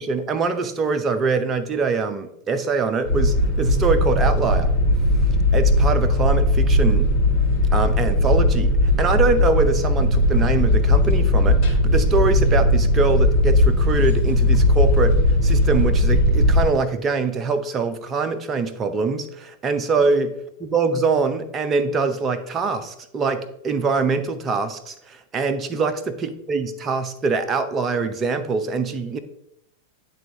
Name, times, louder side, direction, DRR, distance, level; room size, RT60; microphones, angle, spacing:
voice 1, 0.0-4.7 5.5-7.1 7.7-15.2 15.4-20.3 20.6-29.2, right 4 dB, 25° right, 9 dB, 0.6 m, -23 dB
sound 1, 3.0-16.7, left 1 dB, 45° left, 2.2 m, -18 dB
10.5 x 3.5 x 2.8 m, 0.77 s
figure-of-eight pair, 90°, 0 cm